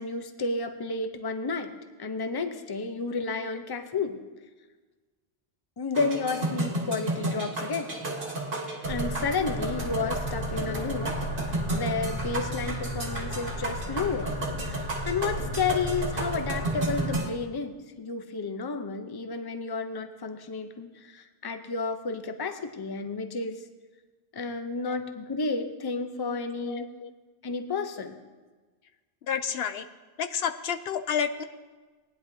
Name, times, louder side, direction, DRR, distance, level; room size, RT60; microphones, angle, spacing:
voice 1, 0.0-1.7 2.0-4.2 5.8-8.0 8.9-11.1 11.4-14.3 14.6-23.6 24.3-26.9 27.4-28.2, left 4 dB, 25° left, 8 dB, 0.6 m, -31 dB
sound 1, 5.9-17.3, right 2 dB, 55° right, 1.4 m, -33 dB
sound 2, 8.8-17.2, equal, 50° left, 2.8 m, -34 dB
voice 2, 26.6-27.1 29.3-29.9 30.2-31.4, left 7 dB, 75° left, 9 dB, 0.8 m, -30 dB
18.5 x 10.0 x 2.7 m, 1.3 s
omnidirectional pair, 1.0 m